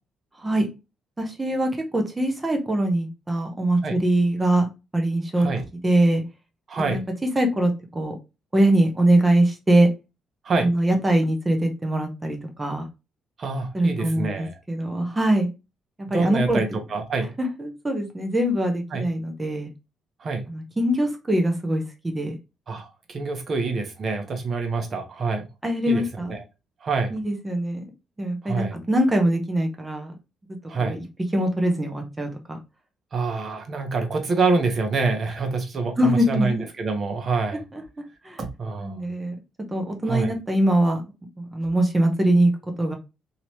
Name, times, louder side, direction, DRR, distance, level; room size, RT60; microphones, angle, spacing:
voice 1, 1.2-4.7 4.9-5.5 5.8-6.2 6.8-7.0 7.3-8.1 8.5-9.9 10.6-12.9 13.7-15.5 16.1-16.6 17.4-19.7 20.5-22.3 25.6-26.4 27.1-27.8 28.2-30.1 30.8-31.0 31.3-32.6 36.0-36.6 37.7-37.8 38.2-38.4 38.8-39.4 39.7-41.0 41.4-42.5 42.8-42.9, right 1 dB, 20° right, 0.8 m, -22 dB
voice 2, 6.7-7.0 10.4-10.7 13.4-14.5 16.1-17.3 18.9-19.0 20.2-20.4 22.7-25.5 25.9-26.0 26.3-26.4 26.8-27.1 28.4-28.8 30.7-31.0 33.1-37.6 38.4-39.0 40.1-40.3, right 4 dB, 45° right, 0.9 m, -26 dB
3.0 x 2.9 x 2.8 m
cardioid pair, 90°, 0 cm